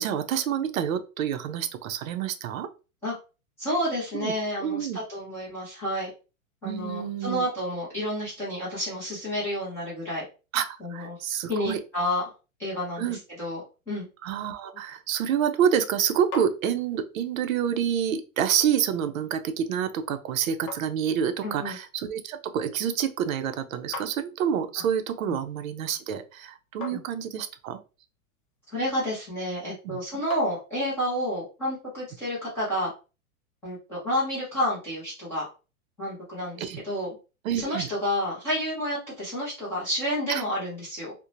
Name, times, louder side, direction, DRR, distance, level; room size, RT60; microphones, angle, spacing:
voice 1, 0.0-2.7 4.1-4.3 4.6-5.0 6.6-7.4 10.5-11.8 13.0-13.2 14.2-27.8 29.8-30.0 36.6-36.8 37.4-37.9 40.3-40.4, right 8 dB, 65° right, 9 dB, 0.5 m, -28 dB
voice 2, 3.6-6.1 6.6-10.2 10.8-11.2 11.5-12.2 12.6-14.1 21.4-21.8 24.8-24.9 25.3-25.4 26.9-27.0 28.7-32.9 33.6-35.5 36.0-37.2 37.5-41.1, equal, 5° left, -10 dB, 0.5 m, -30 dB
sound 1, 16.0-31.2, left 4 dB, 35° left, 0.7 m, -47 dB
2.9 x 2.0 x 2.4 m, 0.31 s
supercardioid pair, 165°, 43 cm